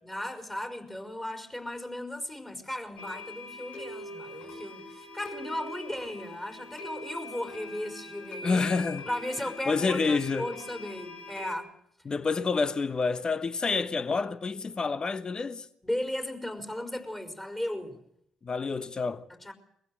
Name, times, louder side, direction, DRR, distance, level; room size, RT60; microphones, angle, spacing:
voice 1, 0.0-8.7 9.1-11.8 15.8-18.0 19.3-19.5, left 1 dB, 15° left, 5.1 m, -36 dB
sound 1, 3.0-11.6, left 1 dB, 65° left, 5.7 m, -43 dB
voice 2, 8.4-9.1 9.7-10.5 12.1-15.7 18.4-19.2, left 4 dB, 40° left, 1.1 m, -28 dB
22.5 x 15.5 x 9.0 m
hypercardioid pair, 50°, 2 cm